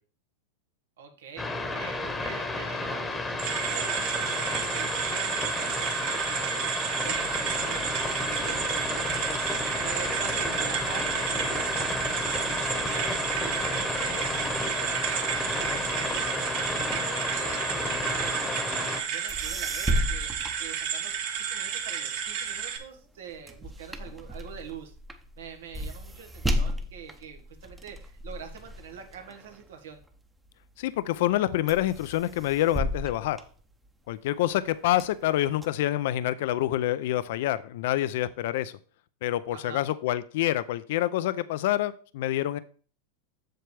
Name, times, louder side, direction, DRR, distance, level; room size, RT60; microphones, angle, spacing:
voice 1, 1.0-24.9 25.4-30.0 39.5-39.8, right 7 dB, 85° right, 5 dB, 1.6 m, -45 dB
sound 1, 1.4-19.0, left 2 dB, 10° left, 1.1 m, -32 dB
sound 2, 3.4-22.8, right 8 dB, 60° right, 1.3 m, -31 dB
sound 3, 19.0-19.1 19.3-21.4 21.8-30.5 31.0-31.4 31.7-34.2 34.6-35.6, equal, 10° right, 0.8 m, -34 dB
voice 2, 30.8-33.4 34.1-38.7 39.2-42.6, left 14 dB, 70° left, 15 dB, 0.4 m, -27 dB
7.8 x 6.7 x 3.3 m, 0.41 s
supercardioid pair, 130°, 0 cm